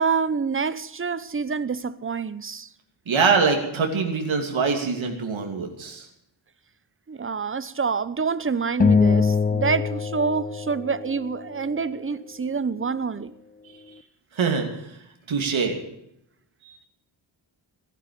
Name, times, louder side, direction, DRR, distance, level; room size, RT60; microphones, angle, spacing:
voice 1, 0.0-2.7 7.1-13.3, right 5 dB, 25° right, 0.9 m, -27 dB
voice 2, 3.1-6.1 14.3-15.0 15.3-15.8 16.6-16.8, right 5 dB, 75° right, 2.8 m, -24 dB
sound 1, 8.8-11.4, left 5 dB, 20° left, 0.5 m, -22 dB
16.5 x 11.0 x 6.8 m
wide cardioid pair, 95°, 47 cm